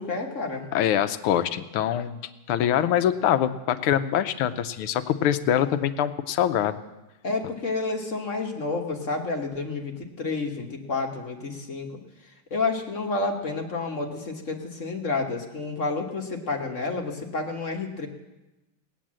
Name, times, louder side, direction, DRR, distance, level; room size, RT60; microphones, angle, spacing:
voice 1, 0.0-0.6 7.2-18.1, left 3 dB, 40° left, 2 dB, 1.4 m, -30 dB
voice 2, 0.7-2.2 2.5-6.8, left 10 dB, 80° left, 11 dB, 1.6 m, -24 dB
18.0 x 9.4 x 7.5 m, 1.0 s
omnidirectional pair, 2.4 m